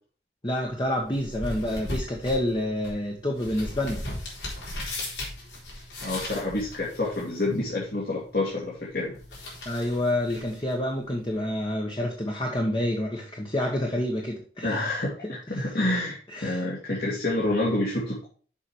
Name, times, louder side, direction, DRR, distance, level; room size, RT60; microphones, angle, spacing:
voice 1, 0.4-4.0 9.6-14.9 15.5-15.7 16.3-16.6, left 1 dB, 25° left, 1.1 m, -28 dB
Paper turning, 0.6-11.6, left 1 dB, 80° left, 4.0 m, -39 dB
voice 2, 6.0-9.2 14.6-18.3, left 2 dB, 55° left, 2.6 m, -28 dB
7.2 x 5.9 x 4.8 m
head